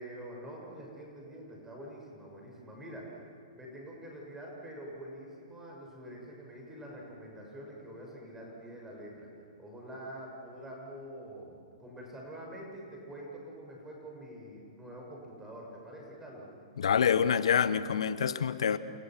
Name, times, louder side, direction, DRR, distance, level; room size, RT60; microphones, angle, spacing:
voice 1, 0.0-3.3 3.5-9.3 9.6-16.5, right 1 dB, 10° right, 6.4 m, -46 dB
voice 2, 16.8-18.8, left 7 dB, 75° left, 1.1 m, -26 dB
29.5 x 26.0 x 6.2 m
hypercardioid pair, 125°, 3 cm